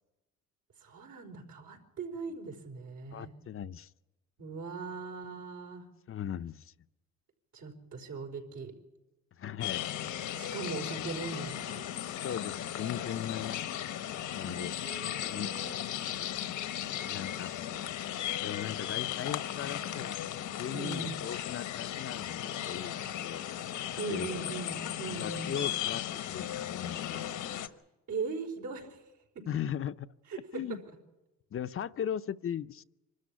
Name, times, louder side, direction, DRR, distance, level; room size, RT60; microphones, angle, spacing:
voice 1, 0.8-3.3 4.4-5.9 7.5-8.7 10.3-11.9 14.3-15.8 20.7-21.2 23.9-25.7 28.1-29.5 30.3-30.8, right 4 dB, 75° right, 2 dB, 4.8 m, -40 dB
voice 2, 3.1-3.9 6.1-6.7 9.4-9.8 12.2-13.6 14.4-14.7 15.0-15.5 17.1-17.5 18.4-20.2 20.6-22.9 23.2-23.4 24.1-24.3 25.1-26.0 26.3-27.3 29.5-30.1 30.5-30.8 31.5-32.8, left 9 dB, 45° left, 12 dB, 0.6 m, -38 dB
sound 1, 9.6-27.7, left 11 dB, 80° left, 1.2 m, -36 dB
25.0 x 13.0 x 9.9 m, 1.0 s
cardioid pair, 90°, 30 cm